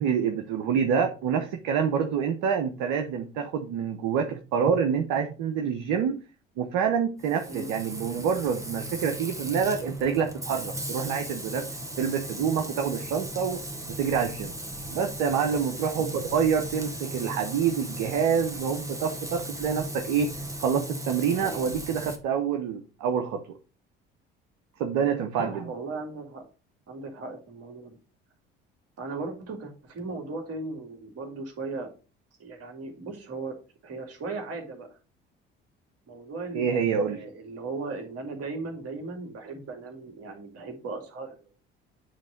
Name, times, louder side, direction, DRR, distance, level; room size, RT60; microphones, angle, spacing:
voice 1, 0.0-6.2 6.6-13.6 13.9-14.5 14.9-20.3 20.6-23.6 24.8-25.7 36.5-37.2, right 7 dB, 70° right, 5 dB, 0.9 m, -27 dB
Frying (food), 7.2-22.2, right 1 dB, 10° right, 1.6 m, -37 dB
voice 2, 25.4-26.4 26.9-28.0 29.0-31.9 32.4-33.6 33.8-34.9 36.1-41.5, right 3 dB, 55° right, 4 dB, 2.5 m, -37 dB
8.9 x 3.3 x 5.1 m, 0.34 s
hypercardioid pair, 60°, 29 cm